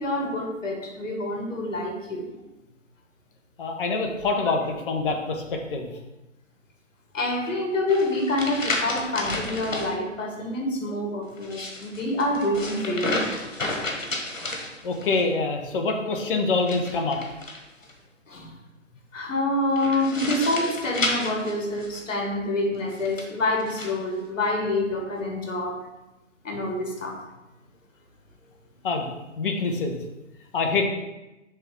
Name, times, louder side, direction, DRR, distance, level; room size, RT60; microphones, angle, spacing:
voice 1, 0.0-2.3 7.1-13.3 18.3-18.5 19.1-25.8 26.4-27.2, left 1 dB, 75° left, 1 dB, 1.8 m, -27 dB
voice 2, 3.6-5.9 14.8-17.2 28.8-29.1 29.4-30.0 30.5-30.8, left 3 dB, 45° left, 3 dB, 1.0 m, -25 dB
sound 1, 7.9-9.9 11.3-15.2 16.6-17.9 19.8-22.2 22.9-23.9, left 2 dB, 90° left, 1.5 m, -31 dB
6.2 x 3.7 x 4.6 m, 1.0 s
hypercardioid pair, 145°, 39 cm